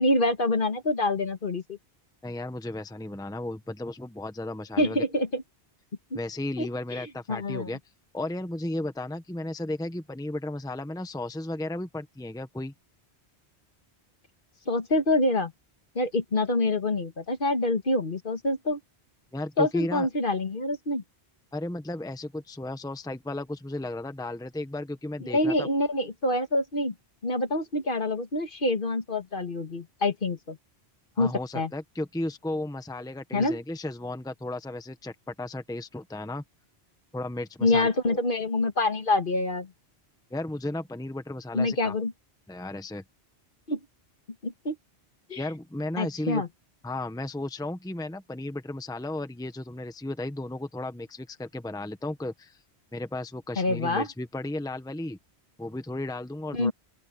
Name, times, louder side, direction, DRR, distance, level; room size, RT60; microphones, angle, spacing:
voice 1, 0.0-1.8 4.8-5.4 6.6-7.7 14.7-15.5 16.0-18.8 19.6-21.0 25.2-26.9 27.2-30.6 31.2-31.7 33.3-33.6 37.6-39.7 41.5-42.1 43.7-43.8 44.4-44.8 45.3-45.4 46.0-46.5 53.6-54.1 56.5-56.7, left 2 dB, 55° left, 1.8 m, -26 dB
voice 2, 2.2-5.0 6.1-7.8 8.1-12.7 19.3-20.1 21.5-25.7 31.2-36.4 37.1-37.9 40.3-41.9 42.5-43.0 45.4-46.4 46.8-52.6 52.9-55.2 55.6-56.7, left 1 dB, 5° left, 1.0 m, -34 dB
open air
omnidirectional pair, 1.1 m